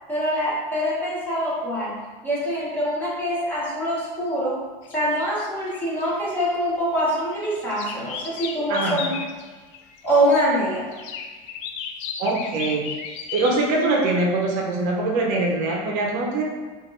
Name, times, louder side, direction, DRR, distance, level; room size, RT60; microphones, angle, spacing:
voice 1, 0.1-4.5 4.9-9.1 10.0-10.9, equal, 10° left, -7 dB, 0.9 m, -24 dB
sound 1, 4.8-6.4 7.0-10.3 10.9-13.7, left 6 dB, 65° left, 0.4 m, -35 dB
voice 2, 8.7-9.0 12.2-13.0 13.3-16.4, right 2 dB, 50° right, -1 dB, 0.7 m, -23 dB
5.0 x 2.5 x 3.1 m, 1.4 s
cardioid pair, 170°, 17 cm